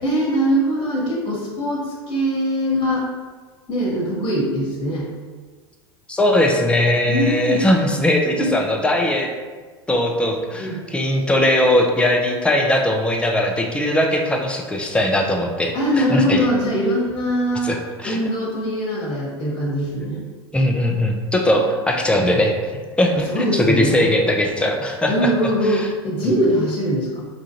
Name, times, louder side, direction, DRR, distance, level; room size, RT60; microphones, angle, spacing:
voice 1, 0.0-3.1 3.7-5.1 7.1-7.6 8.4-8.5 10.6-10.8 15.7-17.7 18.0-20.2 23.1-24.1 25.1-27.2, equal, 30° left, -3 dB, 1.3 m, -22 dB
voice 2, 6.1-9.3 9.9-16.5 17.6-18.2 20.5-22.5 23.0-25.3 25.6-25.9, left 1 dB, 5° left, 2 dB, 0.5 m, -19 dB
4.9 x 2.5 x 2.8 m, 1.4 s
hypercardioid pair, 90°, 15 cm